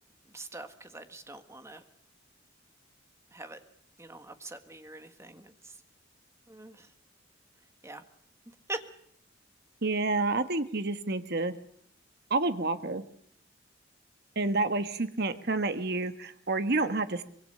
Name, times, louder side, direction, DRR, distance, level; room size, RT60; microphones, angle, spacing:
voice 1, 0.2-1.8 3.3-3.6 4.0-5.8 6.5-6.9 7.8-8.0 8.7-8.8, right 2 dB, 15° right, 8 dB, 1.5 m, -43 dB
voice 2, 9.8-11.5 12.3-13.0 14.3-17.2, right 3 dB, 55° right, 10 dB, 1.4 m, -29 dB
24.5 x 21.5 x 6.7 m, 0.68 s
head